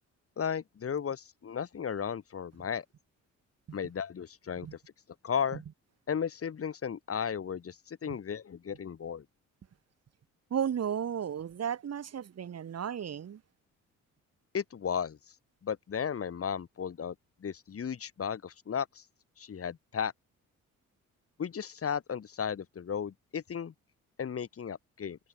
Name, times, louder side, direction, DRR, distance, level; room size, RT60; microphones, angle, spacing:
voice 1, 0.4-2.8 3.7-4.7 5.2-5.6 6.1-9.2 14.5-15.2 15.6-17.2 17.4-19.0 19.4-20.1 21.4-23.7 24.2-25.2, left 7 dB, 50° left, 5.4 m, -35 dB
voice 2, 10.5-13.4, right 8 dB, 55° right, 6.0 m, -34 dB
cardioid pair, 90°, 30 cm